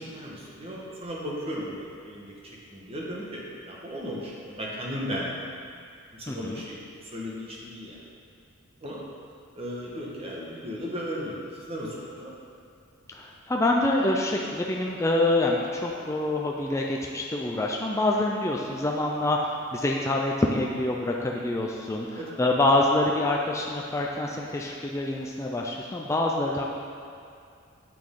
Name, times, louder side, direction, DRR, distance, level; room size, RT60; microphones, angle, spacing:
voice 1, 0.0-2.3 2.7-5.5 6.1-8.0 8.8-9.0 9.5-12.3 22.2-22.5, equal, 30° right, -4 dB, 1.3 m, -36 dB
voice 2, 6.3-6.6 13.1-26.6, left 2 dB, 15° left, -1 dB, 0.4 m, -26 dB
8.5 x 6.1 x 3.7 m, 2.4 s
head